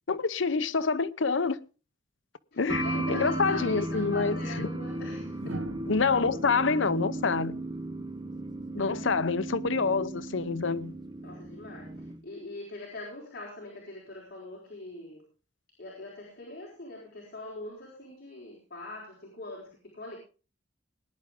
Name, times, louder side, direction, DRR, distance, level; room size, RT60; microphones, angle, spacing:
voice 1, 0.1-1.6 2.6-4.7 5.9-7.6 8.7-10.9, left 4 dB, 70° left, 0.8 m, -27 dB
voice 2, 2.5-5.6 8.8-9.0 11.2-15.3 15.8-20.2, left 2 dB, 50° left, 4.7 m, -43 dB
sound 1, 2.7-12.2, right 1 dB, 20° right, 1.2 m, -35 dB
sound 2, 3.8-4.0 5.3-8.4 10.0-10.3, right 1 dB, 75° right, 1.2 m, -43 dB
19.5 x 10.5 x 3.7 m
head